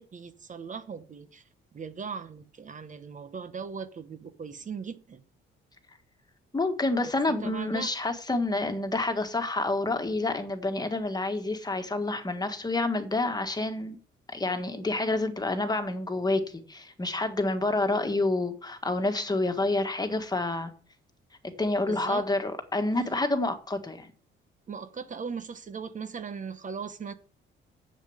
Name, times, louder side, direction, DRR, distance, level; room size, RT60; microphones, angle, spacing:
voice 1, 0.0-1.4 1.7-5.2 7.0-7.1 7.4-7.9 21.9-22.3 24.7-27.1, right 6 dB, 40° right, 1.0 m, -38 dB
voice 2, 6.5-14.0 14.3-16.4 16.7-20.7 21.6-24.1, left 2 dB, 20° left, 1.7 m, -28 dB
7.7 x 7.1 x 7.9 m
cardioid pair, 90°, 20 cm